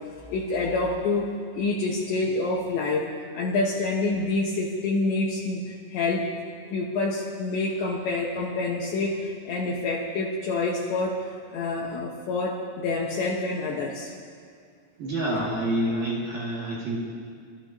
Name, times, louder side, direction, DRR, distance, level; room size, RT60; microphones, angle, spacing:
voice 1, 0.3-3.1 3.3-6.3 6.7-14.1 15.3-15.5, left 3 dB, 70° left, -4 dB, 3.2 m, -27 dB
voice 2, 15.0-17.0, right 1 dB, 55° right, -8 dB, 3.5 m, -27 dB
29.0 x 14.0 x 2.9 m, 2.2 s
omnidirectional pair, 5.9 m